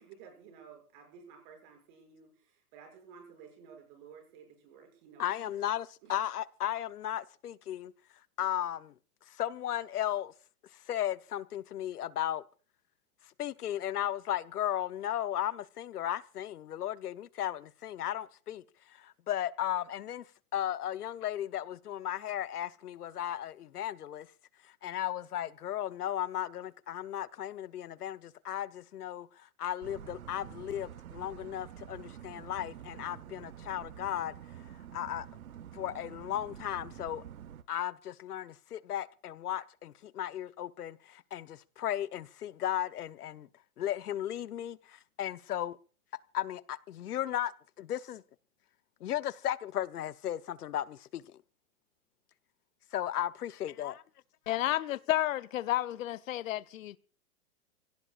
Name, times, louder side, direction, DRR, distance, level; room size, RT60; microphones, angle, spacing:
voice 1, 0.0-5.2 6.0-6.2 7.0-7.1, right 6 dB, 35° right, 6.7 m, -54 dB
voice 2, 5.2-7.9 8.4-8.9 9.3-10.3 10.7-12.4 13.4-20.3 20.5-24.3 24.6-34.3 34.9-35.3 35.7-37.2 37.7-43.5 43.8-45.8 46.3-47.5 47.8-48.2 49.0-51.4 52.9-54.0, left 11 dB, 85° left, 1.0 m, -35 dB
sound 1, 29.8-37.6, right 10 dB, 70° right, 1.3 m, -48 dB
voice 3, 54.5-57.0, left 14 dB, 60° left, 0.8 m, -31 dB
30.0 x 17.0 x 2.5 m
hypercardioid pair, 165°, 44 cm